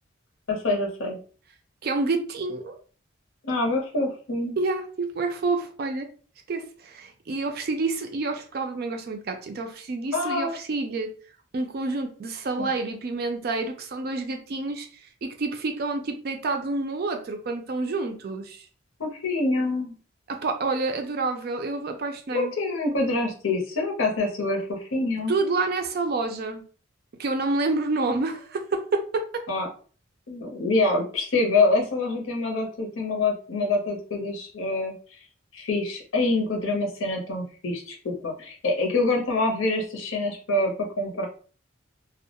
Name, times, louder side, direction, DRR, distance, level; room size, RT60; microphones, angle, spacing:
voice 1, 0.5-1.2 3.4-4.6 10.1-10.6 12.6-12.7 19.0-19.9 22.3-25.4 29.5-29.7 30.3-34.9 35.5-41.3, left 2 dB, 85° left, 2 dB, 0.7 m, -26 dB
voice 2, 1.8-2.8 4.6-6.1 6.5-11.1 11.5-14.9 15.2-18.6 20.3-22.5 25.3-26.6 27.2-29.4, right 3 dB, 50° right, 5 dB, 0.3 m, -28 dB
2.2 x 2.0 x 2.8 m, 0.40 s
head